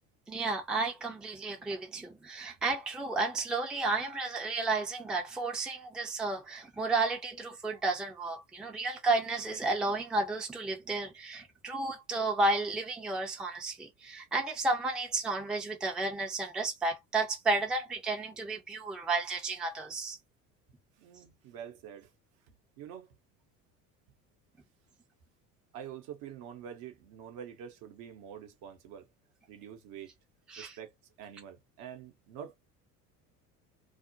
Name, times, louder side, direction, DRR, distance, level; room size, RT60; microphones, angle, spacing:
voice 1, 0.3-20.2 30.5-30.7, right 3 dB, ahead, 0.5 m, -32 dB
voice 2, 21.0-22.1 22.5-23.1 25.7-29.0 29.5-30.1 30.6-30.9 31.2-32.6, right 9 dB, 50° right, 0.8 m, -46 dB
2.4 x 2.1 x 2.6 m
figure-of-eight pair, 65°, 46 cm